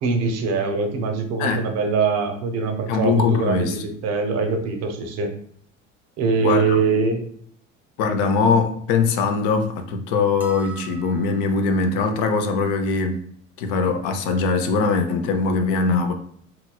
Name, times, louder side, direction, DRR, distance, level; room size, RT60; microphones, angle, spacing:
voice 1, 0.0-5.3 6.2-7.2, right 4 dB, 45° right, 0.7 m, -23 dB
voice 2, 2.9-3.8 6.4-6.8 8.0-13.2 13.6-16.1, left 4 dB, 55° left, 0.6 m, -21 dB
sound 1, 10.4-11.7, right 6 dB, 5° right, 0.3 m, -40 dB
3.0 x 2.9 x 2.3 m
figure-of-eight pair, 65°, 38 cm